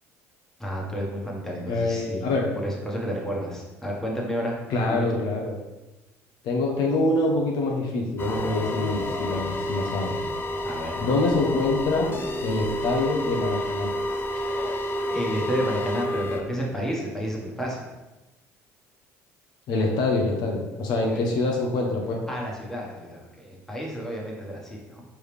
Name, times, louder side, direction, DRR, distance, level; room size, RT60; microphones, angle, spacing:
voice 1, 0.6-2.3 2.6-4.5 4.9-5.0 10.6-11.1 14.3-14.7 15.1-17.9 21.0-21.2 22.3-25.0, equal, 5° left, -2 dB, 1.3 m, -31 dB
voice 2, 1.7-2.5 4.7-5.5 6.4-10.2 11.0-12.1 12.4-13.9 19.7-22.2, left 2 dB, 65° left, 0 dB, 0.8 m, -25 dB
sound 1, 8.2-16.4, left 1 dB, 30° left, 0.5 m, -29 dB
4.6 x 3.4 x 3.3 m, 1.1 s
hypercardioid pair, 70°, 8 cm